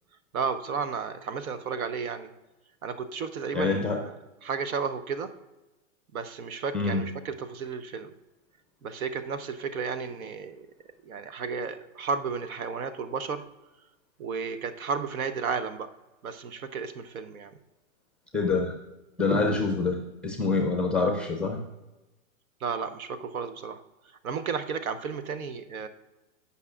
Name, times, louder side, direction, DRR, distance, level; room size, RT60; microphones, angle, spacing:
voice 1, 0.3-2.3 2.8-4.1 4.4-5.3 6.1-8.1 8.8-10.7 11.0-13.4 14.2-15.9 16.2-17.5 22.6-23.8 24.2-25.9, right 5 dB, 85° right, 10 dB, 1.0 m, -33 dB
voice 2, 3.5-4.0 6.7-7.0 18.3-18.8 19.2-21.6, left 3 dB, 5° left, 3 dB, 0.4 m, -26 dB
16.0 x 5.7 x 2.4 m, 1.1 s
hypercardioid pair, 140°, 41 cm